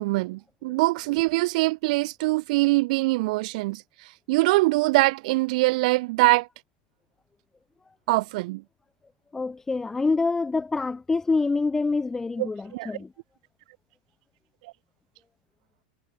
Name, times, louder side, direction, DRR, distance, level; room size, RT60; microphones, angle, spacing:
voice 1, 0.0-3.8 4.3-6.5 8.1-8.6 12.4-12.9, right 22 dB, 60° right, 0.8 m, -23 dB
voice 2, 9.3-13.1, left 3 dB, 10° left, 1.5 m, -26 dB
supercardioid pair, 150°, 5 cm